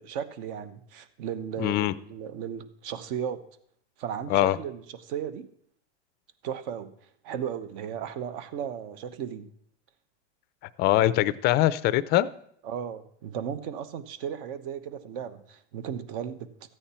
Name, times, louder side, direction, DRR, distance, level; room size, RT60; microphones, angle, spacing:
voice 1, 0.0-3.4 4.0-5.5 6.4-6.9 7.2-9.5 12.6-16.7, right 8 dB, 55° right, 1.2 m, -35 dB
voice 2, 1.6-1.9 4.3-4.6 10.8-12.3, left 15 dB, 30° left, 0.5 m, -22 dB
14.0 x 8.9 x 4.3 m
supercardioid pair, 135°, 34 cm